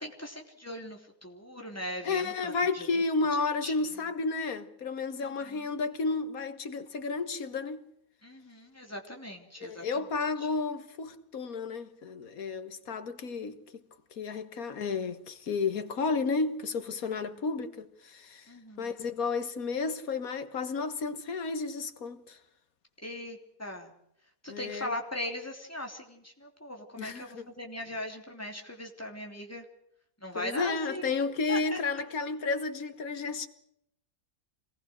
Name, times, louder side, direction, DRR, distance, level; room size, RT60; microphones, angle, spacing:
voice 1, 0.0-3.0 3.6-3.7 5.2-5.7 8.2-10.1 10.4-10.5 17.0-17.5 18.5-19.0 23.0-24.0 24.4-29.6 30.2-31.1 31.5-31.8, left 1 dB, 10° left, 3.3 m, -40 dB
voice 2, 2.0-7.8 9.6-13.6 14.2-18.4 18.8-22.4 24.5-24.9 27.0-27.5 30.4-33.5, left 4 dB, 85° left, 1.9 m, -32 dB
26.0 x 19.5 x 6.4 m
omnidirectional pair, 1.5 m